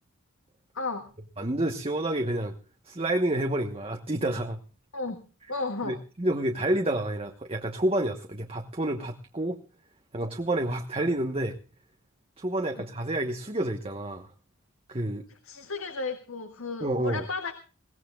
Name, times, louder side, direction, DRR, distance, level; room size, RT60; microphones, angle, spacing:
voice 1, 0.7-1.1 4.9-5.2 5.5-6.0 15.5-17.5, left 3 dB, 70° left, 6 dB, 1.8 m, -33 dB
voice 2, 1.4-2.6 2.8-4.6 5.8-9.6 10.1-11.6 12.4-14.3 14.9-15.2 16.8-17.2, right 1 dB, 25° right, 4 dB, 1.1 m, -29 dB
21.5 x 18.0 x 2.3 m, 0.37 s
head